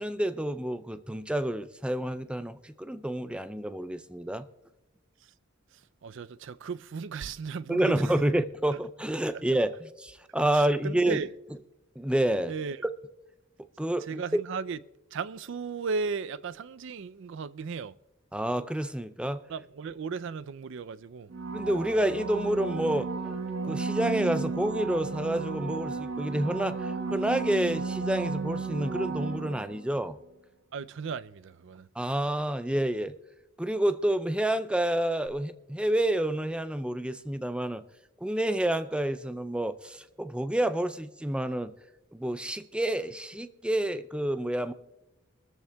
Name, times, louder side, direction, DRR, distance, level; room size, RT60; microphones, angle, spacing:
voice 1, 0.0-4.5 7.7-11.2 12.0-12.5 13.8-14.4 18.3-19.4 21.5-23.4 23.6-30.2 32.0-33.2 33.6-37.8 38.2-41.7 42.1-44.7, right 1 dB, 5° right, 0.4 m, -29 dB
voice 2, 6.0-8.3 9.3-9.4 10.5-11.3 12.5-12.8 14.1-14.8 15.1-18.0 19.5-21.3 30.7-31.9, right 5 dB, 65° right, 0.4 m, -35 dB
sound 1, 21.3-29.9 35.3-35.4, right 4 dB, 85° right, 1.1 m, -33 dB
24.0 x 13.5 x 2.3 m
head